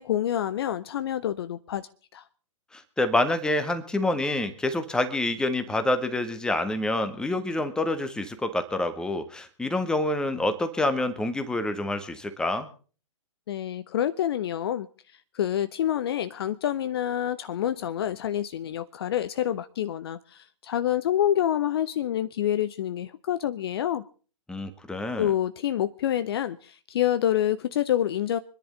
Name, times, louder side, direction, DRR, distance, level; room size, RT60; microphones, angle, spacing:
voice 1, 0.0-2.2 13.5-14.9 15.3-24.0 25.2-28.4, left 11 dB, 45° left, 14 dB, 0.7 m, -27 dB
voice 2, 2.7-12.7 24.5-25.3, left 2 dB, 5° left, 9 dB, 1.4 m, -27 dB
26.0 x 10.5 x 3.8 m, 0.39 s
figure-of-eight pair, 120°, 18 cm